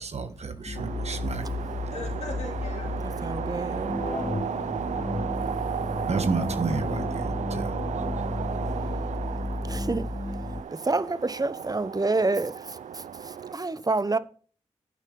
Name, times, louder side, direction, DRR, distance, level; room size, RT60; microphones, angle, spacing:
voice 1, 0.0-1.4 6.0-7.8, right 4 dB, 65° right, 1.3 m, -31 dB
sound 1, 0.6-10.6, left 2 dB, 35° left, 1.1 m, -32 dB
sound 2, 0.7-13.5, right 8 dB, 85° right, 0.5 m, -35 dB
voice 2, 1.9-3.7 14.1-14.2, left 3 dB, 65° left, 2.9 m, -41 dB
voice 3, 3.0-3.9 9.6-10.1 10.7-14.2, right 3 dB, 30° right, 0.9 m, -28 dB
10.5 x 8.9 x 3.8 m
cardioid pair, 45°, 12 cm